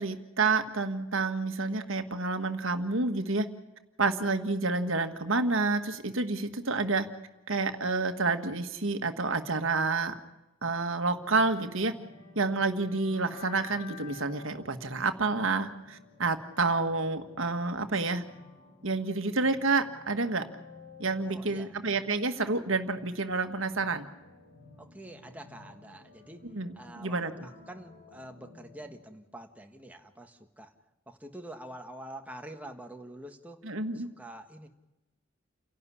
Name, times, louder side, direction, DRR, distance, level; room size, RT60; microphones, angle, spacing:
voice 1, 0.0-3.5 4.0-7.1 7.5-10.1 10.6-11.9 12.3-18.2 18.8-20.4 21.0-24.0 26.4-27.5 33.6-34.1, right 3 dB, 65° right, 7 dB, 1.7 m, -29 dB
sound 1, 11.1-29.0, left 4 dB, 45° left, 4.6 m, -52 dB
voice 2, 21.2-21.7 24.8-26.4 26.7-30.7 31.1-34.7, right 1 dB, 5° right, 4 dB, 1.6 m, -46 dB
29.5 x 12.0 x 9.9 m, 1.0 s
head